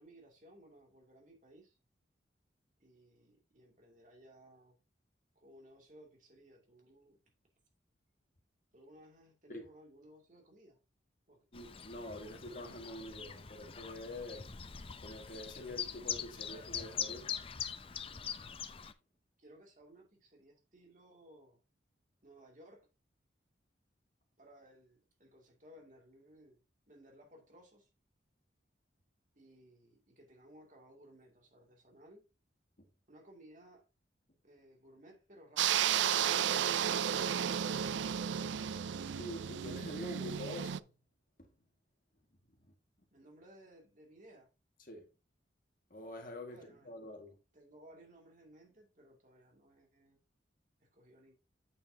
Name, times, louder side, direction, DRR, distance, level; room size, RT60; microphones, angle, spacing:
voice 1, 0.0-1.8 2.8-4.8 5.3-7.2 8.7-10.8 11.3-11.5 19.4-21.6 22.2-22.9 24.4-26.6 26.9-27.9 29.3-32.2 33.1-33.8 34.4-35.9 43.1-44.5 46.5-46.9 47.5-50.2 50.8-51.3, right 1 dB, 45° right, 2.6 m, -59 dB
voice 2, 11.5-14.6 15.0-17.4 39.1-40.9 41.4-41.5 42.5-42.7 44.9-45.1 45.9-46.6 46.9-47.4, left 1 dB, 50° left, 1.9 m, -46 dB
Chirp tweet, 11.5-18.9, left 8 dB, 30° left, 0.5 m, -43 dB
sound 1, 35.6-40.8, right 9 dB, 80° right, 0.4 m, -33 dB
8.7 x 7.1 x 2.8 m
head